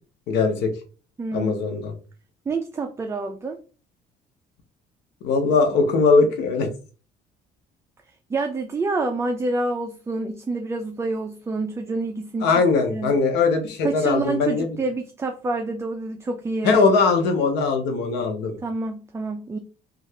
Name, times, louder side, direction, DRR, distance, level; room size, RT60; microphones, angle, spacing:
voice 1, 0.3-0.7 1.3-1.9 5.2-6.7 12.4-14.7 16.6-18.6, left 4 dB, 90° left, 4 dB, 0.7 m, -20 dB
voice 2, 1.2-1.7 2.5-3.6 8.3-13.1 13.8-16.8 18.6-19.6, right 3 dB, 15° right, 4 dB, 0.3 m, -28 dB
2.7 x 2.4 x 3.2 m, 0.36 s
cardioid pair, 110°, 17 cm